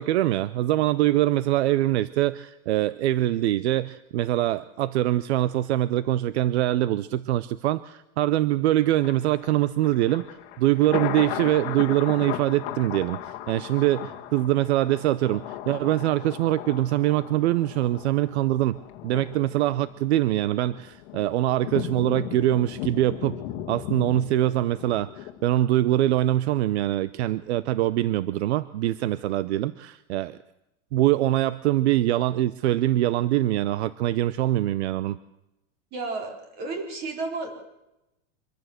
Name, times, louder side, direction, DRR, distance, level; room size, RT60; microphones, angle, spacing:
voice 1, 0.0-10.2 10.6-18.8 19.0-23.4 23.7-30.4 30.9-35.2, right 14 dB, 65° right, 16 dB, 0.8 m, -23 dB
Thunder, 9.0-26.1 26.5-26.6, left 12 dB, 40° left, 1.9 m, -37 dB
voice 2, 35.9-37.5, right 3 dB, 25° right, 3 dB, 4.2 m, -32 dB
25.0 x 14.5 x 8.0 m, 0.90 s
supercardioid pair, 180°, 36 cm